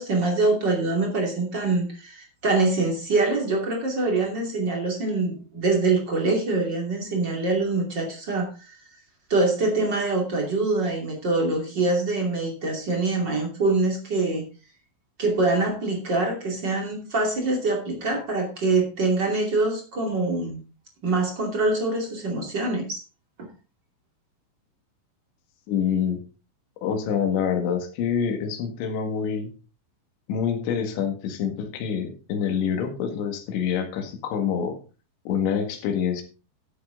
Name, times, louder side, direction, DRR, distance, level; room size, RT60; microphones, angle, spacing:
voice 1, 0.0-8.8 9.3-14.5 15.2-20.6 21.0-23.0, right 3 dB, 35° right, 1 dB, 2.0 m, -24 dB
voice 2, 25.7-26.2 26.8-29.5 30.3-34.8 35.3-36.2, left 7 dB, 70° left, 5 dB, 3.9 m, -26 dB
12.0 x 8.5 x 3.8 m, 0.33 s
omnidirectional pair, 5.7 m